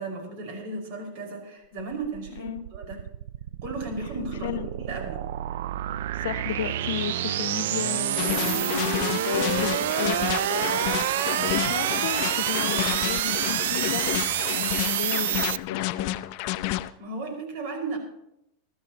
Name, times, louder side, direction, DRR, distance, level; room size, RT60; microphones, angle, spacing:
voice 1, 0.0-3.0 3.6-5.3 11.8-11.9 17.0-18.0, right 3 dB, 60° right, 2 dB, 5.2 m, -35 dB
sound 1, 1.8-15.6, right 13 dB, 75° right, 0.4 m, -28 dB
voice 2, 6.2-10.8 11.5-14.2 14.5-16.1, left 11 dB, 85° left, 12 dB, 0.9 m, -33 dB
sound 2, 8.2-16.9, left 16 dB, 50° left, 0.6 m, -30 dB
22.0 x 13.0 x 2.9 m, 0.81 s
supercardioid pair, 135°, 0 cm